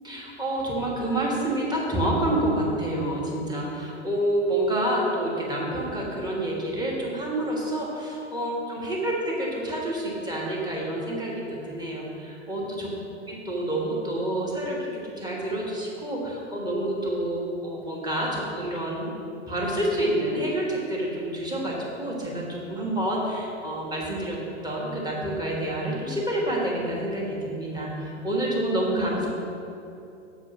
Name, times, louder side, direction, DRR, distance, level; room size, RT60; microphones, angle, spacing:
voice 1, 0.0-12.9 13.3-19.1 19.5-29.3, right 1 dB, 10° right, -4 dB, 1.5 m, -28 dB
7.0 x 4.8 x 5.9 m, 2.8 s
hypercardioid pair, 115°, 37 cm